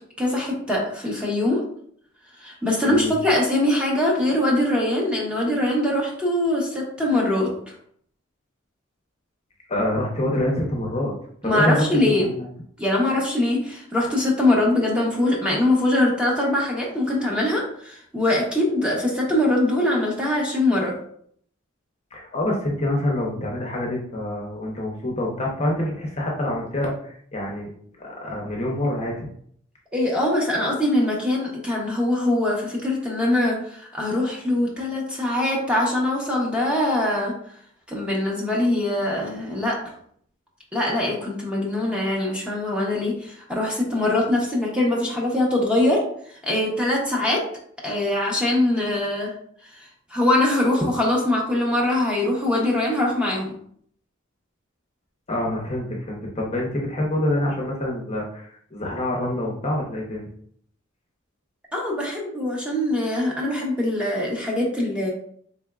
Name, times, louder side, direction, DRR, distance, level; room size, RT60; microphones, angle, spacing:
voice 1, 0.2-1.6 2.4-7.7 11.4-12.3 12.8-20.9 29.9-37.3 37.9-39.8 40.7-46.0 46.4-47.4 47.8-49.3 50.1-53.5 61.7-65.1, left 1 dB, 5° right, -3 dB, 0.8 m, -22 dB
voice 2, 9.7-11.1 11.4-12.5 22.1-27.7 28.0-29.3 55.3-60.3, left 1 dB, 30° left, -2 dB, 0.7 m, -26 dB
3.8 x 3.4 x 2.3 m, 0.63 s
head